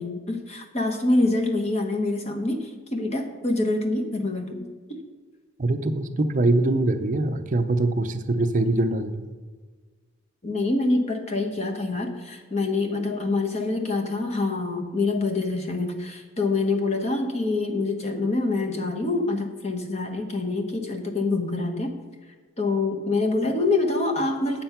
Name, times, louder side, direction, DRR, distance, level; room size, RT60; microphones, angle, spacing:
voice 1, 0.0-4.6 10.4-21.9 22.6-24.6, left 2 dB, 30° left, 4 dB, 1.0 m, -26 dB
voice 2, 5.6-9.2, right 2 dB, 35° right, 9 dB, 0.5 m, -23 dB
8.6 x 7.4 x 5.7 m, 1.4 s
head